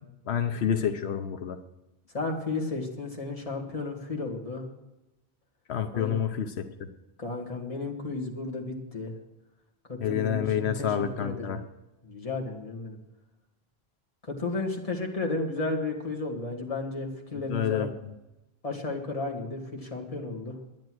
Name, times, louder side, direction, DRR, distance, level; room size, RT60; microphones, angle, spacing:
voice 1, 0.3-1.6 5.7-6.9 10.0-11.6 17.3-18.1, left 8 dB, 85° left, 7 dB, 1.1 m, -29 dB
voice 2, 2.1-4.7 5.9-6.1 7.2-9.1 9.9-11.6 12.0-13.0 14.3-17.9 18.6-20.6, left 3 dB, 35° left, -1 dB, 2.1 m, -33 dB
10.5 x 10.5 x 6.2 m, 0.97 s
omnidirectional pair, 1.1 m